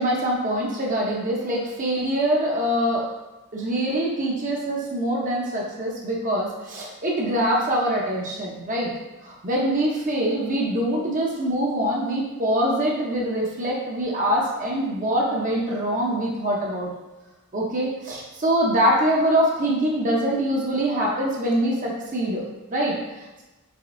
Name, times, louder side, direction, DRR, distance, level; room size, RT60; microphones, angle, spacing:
voice 1, 0.0-3.1 3.5-8.9 9.2-16.9 17.5-22.4 22.7-23.0, right 1 dB, 35° right, -3 dB, 0.6 m, -24 dB
4.9 x 3.5 x 2.5 m, 1.1 s
head